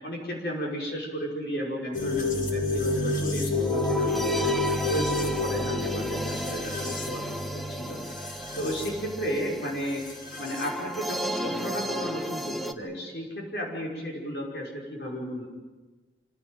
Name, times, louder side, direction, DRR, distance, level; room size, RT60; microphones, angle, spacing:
voice 1, 0.0-8.0 8.5-10.0 10.4-15.5, equal, 65° left, -1 dB, 5.8 m, -34 dB
sound 1, 1.9-10.7, left 2 dB, 45° left, 3.5 m, -30 dB
sound 2, 3.5-12.7, equal, ahead, 0.9 m, -34 dB
26.5 x 16.5 x 9.3 m, 1.2 s
head